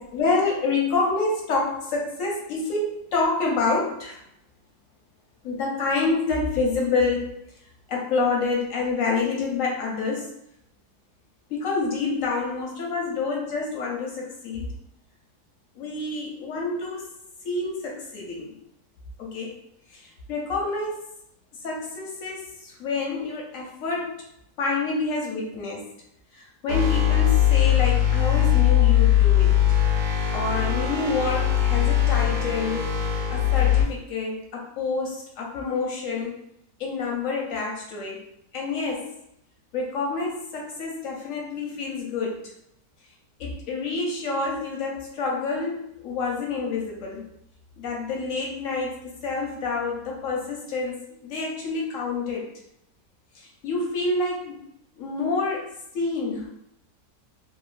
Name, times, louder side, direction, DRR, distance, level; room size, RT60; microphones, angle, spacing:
voice 1, 0.1-4.2 5.4-7.3 7.9-10.3 11.5-14.7 15.7-17.1 17.4-18.5 19.2-19.6 19.9-21.0 21.6-24.2 24.6-25.8 26.3-29.5 30.3-32.9 33.3-36.3 36.8-38.2 38.5-39.1 39.7-42.4 43.4-47.2 47.8-51.0 51.2-52.5 53.3-54.6 54.9-56.5, left 3 dB, 65° left, -2 dB, 0.8 m, -28 dB
sound 1, 26.7-33.8, left 11 dB, 60° right, 0.9 m, -20 dB
2.9 x 2.2 x 2.4 m, 0.78 s
omnidirectional pair, 1.8 m